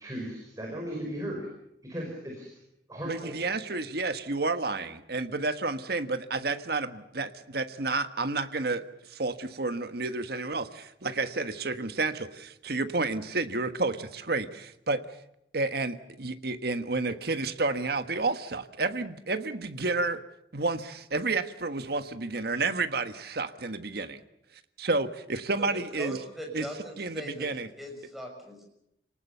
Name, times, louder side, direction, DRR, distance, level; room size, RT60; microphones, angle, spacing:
voice 1, 0.0-1.5 1.8-2.3 2.9-3.4, equal, 20° right, -1 dB, 5.6 m, -36 dB
voice 2, 3.0-15.0 15.5-20.2 20.5-24.2 24.8-26.2 26.5-26.7 27.0-27.7, right 3 dB, 60° right, 9 dB, 1.4 m, -30 dB
voice 3, 26.0-27.5 27.8-28.6, equal, ahead, 1 dB, 6.3 m, -40 dB
28.0 x 19.0 x 6.9 m, 0.80 s
head